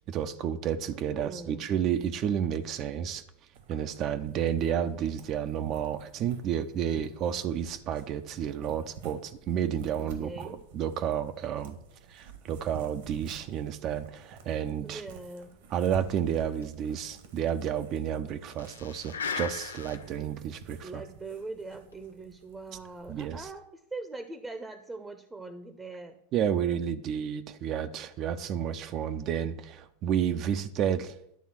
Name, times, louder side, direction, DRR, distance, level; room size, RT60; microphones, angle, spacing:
voice 1, 0.1-3.2 3.7-11.8 12.1-15.0 15.7-21.0 23.1-23.5 26.3-31.1, right 9 dB, 45° right, 10 dB, 0.6 m, -31 dB
voice 2, 0.8-1.7 10.0-10.6 14.8-15.5 20.8-26.2, right 3 dB, 10° right, 8 dB, 0.8 m, -42 dB
sound 1, 3.5-23.5, right 5 dB, 70° right, 1.4 m, -51 dB
sound 2, 16.6-16.7 17.0-17.1 17.5-17.6 18.5-20.2 20.7-20.8 21.7-21.9, left 6 dB, 90° left, 0.5 m, -37 dB
10.5 x 3.6 x 6.0 m, 0.75 s
hypercardioid pair, 100°, 0 cm